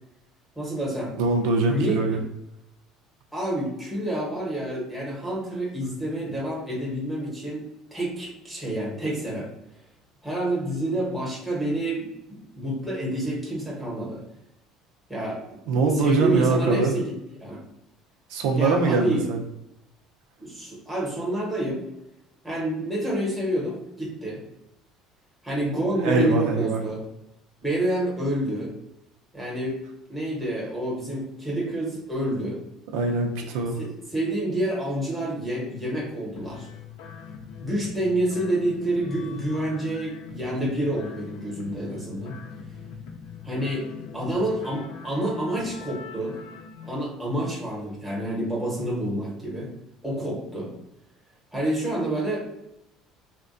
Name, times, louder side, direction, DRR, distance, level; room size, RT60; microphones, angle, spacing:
voice 1, 0.6-1.1 1.7-2.2 3.3-7.6 7.9-9.5 10.2-14.2 15.1-15.6 15.9-17.1 17.4-17.6 18.5-19.2 20.4-21.8 22.4-24.4 25.4-27.0 27.6-28.7 29.3-29.8 30.1-32.6 33.4-33.5 33.8-36.7 37.6-42.4 43.4-46.3 46.8-49.7 50.0-50.7 51.5-52.5, right 1 dB, ahead, -5 dB, 0.9 m, -28 dB
voice 2, 1.2-2.2 15.7-16.9 18.3-19.4 26.0-26.8 32.9-33.8, right 3 dB, 80° right, 1 dB, 0.5 m, -23 dB
sound 1, 36.4-46.9, left 6 dB, 85° left, 0.4 m, -42 dB
3.4 x 2.2 x 2.5 m, 0.87 s
cardioid pair, 170°, 0 cm